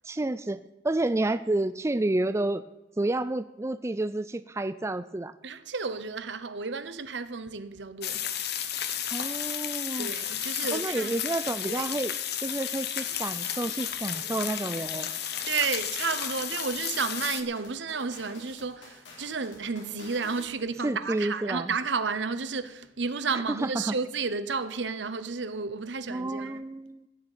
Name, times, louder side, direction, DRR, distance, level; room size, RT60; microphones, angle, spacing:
voice 1, 0.0-2.6 3.0-5.3 9.1-10.1 10.7-12.1 12.4-15.1 20.8-21.7 23.3-24.0 26.1-27.1, right 2 dB, 15° right, 0.4 m, -30 dB
voice 2, 5.4-8.3 10.0-11.2 11.7-11.9 15.4-26.6, right 5 dB, 70° right, 0.9 m, -32 dB
sound 1, 8.0-17.4, left 10 dB, 60° left, 1.1 m, -33 dB
sound 2, 13.0-20.6, left 3 dB, 85° left, 3.6 m, -49 dB
15.5 x 6.6 x 8.9 m
head